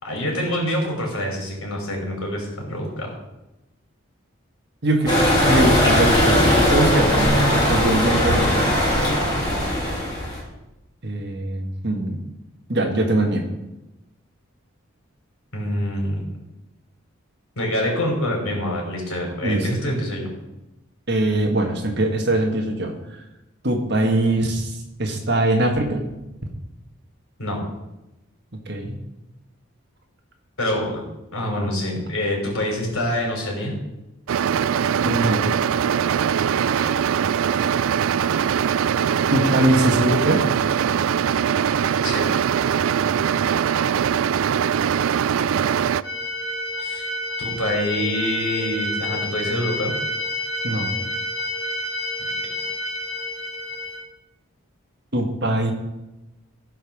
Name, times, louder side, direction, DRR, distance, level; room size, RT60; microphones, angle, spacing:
voice 1, 0.0-3.1 15.5-16.2 17.6-20.3 27.4-27.6 30.6-31.0 31.3-33.8 36.8-37.0 42.0-42.3 46.8-47.1 47.4-50.0, left 1 dB, 85° left, -1 dB, 4.1 m, -26 dB
voice 2, 4.8-5.1 5.4-8.8 11.0-12.2 12.7-13.5 19.4-19.7 21.1-22.9 23.6-24.7 25.0-26.0 28.7-29.0 35.0-35.5 39.3-40.4 43.2-43.4 50.6-51.0 55.1-55.7, right 1 dB, 50° right, 3 dB, 1.7 m, -22 dB
sound 1, 5.1-10.4, equal, 20° left, 3.2 m, -19 dB
sound 2, 34.3-46.0, right 8 dB, 75° right, 0.3 m, -21 dB
sound 3, 46.0-54.0, left 1 dB, 65° left, 3.3 m, -29 dB
15.0 x 5.4 x 6.4 m, 0.95 s
head